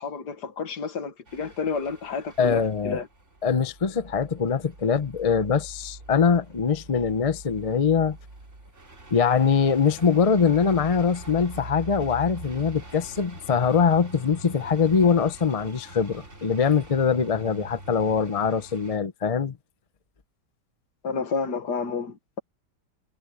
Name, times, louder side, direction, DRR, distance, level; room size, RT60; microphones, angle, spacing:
voice 1, 0.0-3.1 21.0-22.4, left 5 dB, 70° left, 2.1 m, -30 dB
sound 1, 1.3-19.0, right 2 dB, 40° right, 4.0 m, -44 dB
voice 2, 2.4-3.0 3.4-8.2 9.1-19.6, left 6 dB, 35° left, 0.5 m, -23 dB
omnidirectional pair, 1.8 m